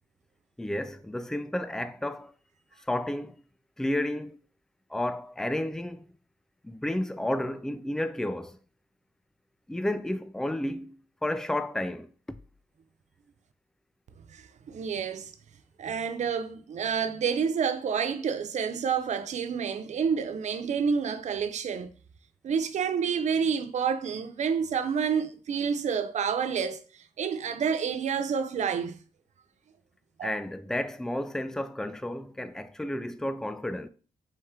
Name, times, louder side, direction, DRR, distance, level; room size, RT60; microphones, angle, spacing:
voice 1, 0.6-2.3 2.9-3.4 3.8-4.4 4.9-6.1 6.6-8.6 9.7-12.1 30.2-33.9, left 1 dB, 5° left, 0.4 m, -31 dB
voice 2, 14.3-15.3 15.8-21.9 22.4-26.8 27.2-29.0 30.2-30.3, right 6 dB, 65° right, 0.5 m, -29 dB
4.5 x 2.9 x 3.6 m
cardioid pair, 75°, 13 cm